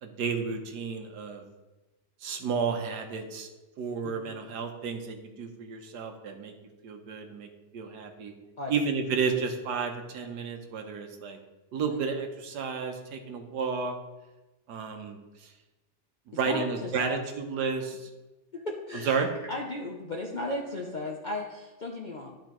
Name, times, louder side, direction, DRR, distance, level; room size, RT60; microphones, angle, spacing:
voice 1, 0.0-1.4 2.2-3.5 3.8-6.5 6.8-7.5 7.7-8.3 8.7-11.4 11.7-13.9 14.7-15.2 16.4-18.0 19.1-19.3, right 5 dB, 80° right, 4 dB, 1.5 m, -31 dB
voice 2, 4.0-4.3 8.6-8.8 11.9-12.1 16.4-17.2 18.5-19.2 19.5-22.4, left 2 dB, 55° left, -1 dB, 0.5 m, -36 dB
12.0 x 5.0 x 3.0 m, 1.1 s
omnidirectional pair, 1.7 m